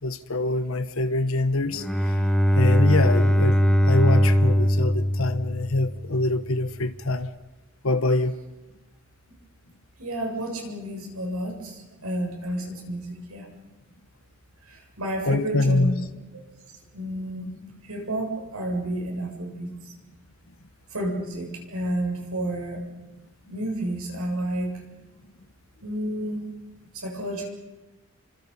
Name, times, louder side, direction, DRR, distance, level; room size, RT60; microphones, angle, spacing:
voice 1, 0.0-2.1 2.5-7.3 7.8-8.3 15.3-16.0, left 2 dB, 70° left, 1.2 m, -24 dB
Bowed string instrument, 1.7-6.2, equal, 5° left, 1.5 m, -21 dB
voice 2, 10.0-13.5 14.7-16.0 16.9-17.6 17.8-19.7 20.9-22.8 23.5-24.7 25.8-26.4 26.9-27.5, right 1 dB, 90° right, 7.4 m, -30 dB
29.5 x 26.0 x 5.7 m
head